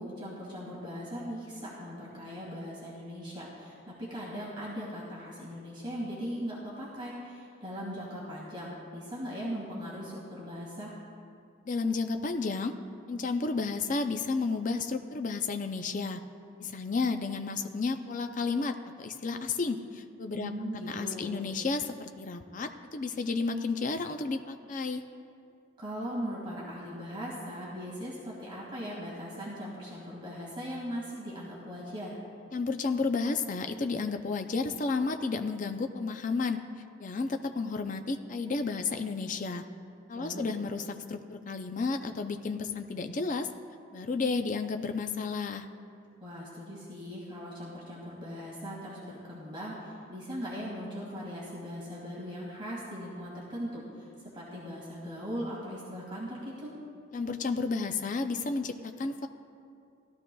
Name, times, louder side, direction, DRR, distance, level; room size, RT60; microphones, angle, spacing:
voice 1, 0.0-10.9 20.3-21.4 25.8-32.2 40.1-40.5 46.2-54.1 54.3-56.7, equal, 25° right, -6 dB, 2.0 m, -39 dB
voice 2, 11.6-12.7 13.1-16.2 16.6-20.5 20.9-25.0 32.5-36.6 37.0-39.6 40.1-43.5 43.9-45.7 57.1-59.3, left 4 dB, 40° left, 6 dB, 0.4 m, -32 dB
17.0 x 13.0 x 2.3 m, 2.4 s
head